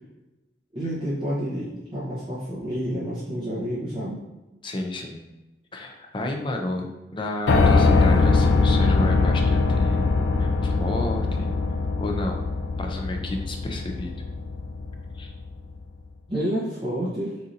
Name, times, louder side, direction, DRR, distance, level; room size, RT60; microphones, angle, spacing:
voice 1, 0.7-4.2 16.3-17.4, equal, 30° right, -10 dB, 1.1 m, -29 dB
voice 2, 4.6-5.2 5.7-6.9 7.1-11.5 12.0-12.4 12.8-14.1 15.2-15.3, left 1 dB, 30° left, 2 dB, 0.6 m, -31 dB
Piano, 7.5-15.5, left 3 dB, 70° left, 0.4 m, -22 dB
6.3 x 2.8 x 2.7 m, 1.1 s
head